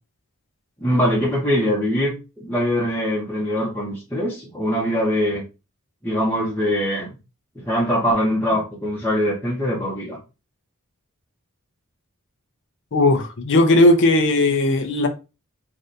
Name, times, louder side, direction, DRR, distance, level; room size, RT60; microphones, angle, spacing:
voice 1, 0.8-5.4 6.0-7.1 7.6-10.2, equal, 10° left, 0.8 m, -22 dB
voice 2, 12.9-15.1, left 2 dB, 55° left, 0.5 m, -17 dB
2.7 x 2.5 x 3.3 m
head